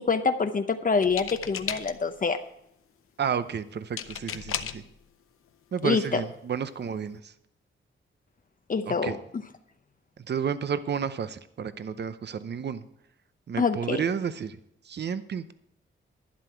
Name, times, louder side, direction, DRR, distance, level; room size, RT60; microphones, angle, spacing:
voice 1, 0.0-2.4 5.8-6.2 8.7-9.2 13.6-14.0, left 5 dB, 40° left, 8 dB, 0.7 m, -26 dB
sound 1, 1.0-2.2 4.0-4.9 5.9-6.0 6.3-6.6, left 9 dB, 90° left, 0.7 m, -35 dB
voice 2, 3.2-4.8 5.7-7.3 8.9-9.2 10.2-12.8 13.5-14.6 14.8-15.5, right 7 dB, 55° right, 13 dB, 0.7 m, -31 dB
11.5 x 10.5 x 4.6 m, 0.77 s
wide cardioid pair, 100°, 21 cm